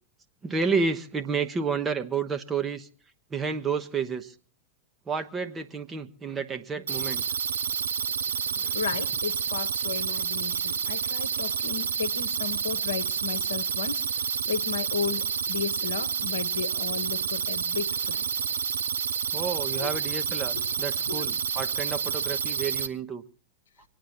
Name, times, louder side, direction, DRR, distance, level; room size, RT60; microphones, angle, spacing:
voice 1, 0.4-2.9 3.3-4.3 5.1-7.2 8.5-8.7 19.3-23.2, right 5 dB, 20° right, 1.0 m, -30 dB
sound 1, 6.9-22.9, right 7 dB, 70° right, 0.8 m, -29 dB
voice 2, 8.7-18.3 19.7-19.9 20.5-20.6 21.0-21.2, left 7 dB, 65° left, 1.0 m, -34 dB
25.5 x 9.4 x 4.4 m
figure-of-eight pair, 90°, 0 cm